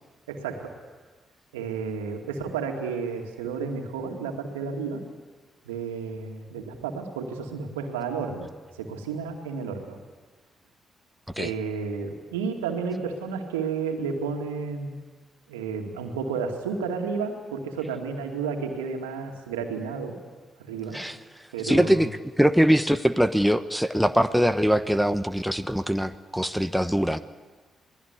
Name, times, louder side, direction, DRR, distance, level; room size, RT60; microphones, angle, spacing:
voice 1, 0.3-0.7 1.5-5.0 5.6-8.5 8.8-10.0 11.4-15.0 15.5-20.2 20.6-21.1 21.5-22.0, right 5 dB, 85° right, 3 dB, 2.3 m, -32 dB
voice 2, 21.6-22.1 22.4-27.2, equal, ahead, 9 dB, 1.0 m, -22 dB
27.5 x 19.5 x 8.3 m, 1.3 s
hypercardioid pair, 40°, 0 cm